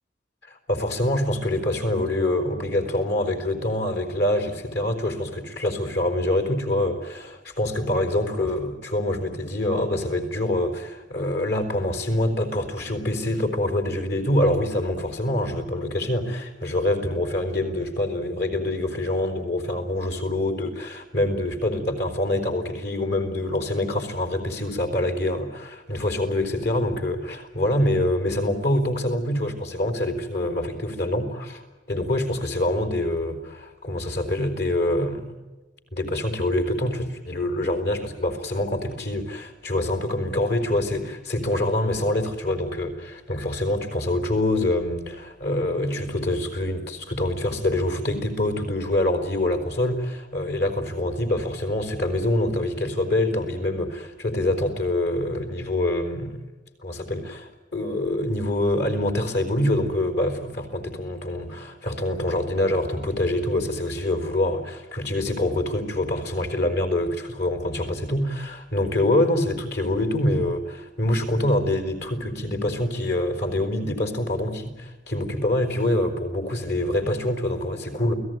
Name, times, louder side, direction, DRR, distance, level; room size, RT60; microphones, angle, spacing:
voice 1, 0.5-31.6 31.9-35.3 35.9-56.4 56.8-78.1, left 1 dB, 65° left, 7 dB, 4.5 m, -25 dB
29.0 x 18.0 x 9.4 m, 1.2 s
head